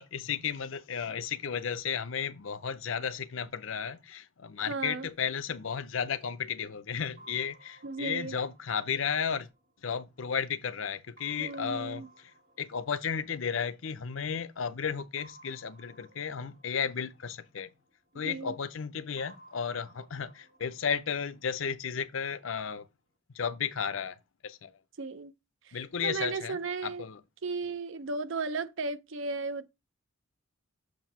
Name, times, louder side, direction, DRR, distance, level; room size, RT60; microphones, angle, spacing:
voice 1, 0.0-9.5 9.8-12.0 12.6-17.7 18.1-22.9 23.3-24.2 24.4-24.7 25.7-27.2, left 7 dB, 70° left, 0.6 m, -34 dB
voice 2, 4.7-5.1 7.8-8.4 11.4-12.1 18.2-18.6 25.0-25.3 25.6-27.1 27.4-29.7, right 4 dB, 65° right, 0.6 m, -35 dB
sound 1, 7.2-10.5 11.2-14.1 15.2-18.3 19.2-22.3, right 1 dB, 45° right, 2.0 m, -59 dB
7.5 x 2.7 x 5.4 m
head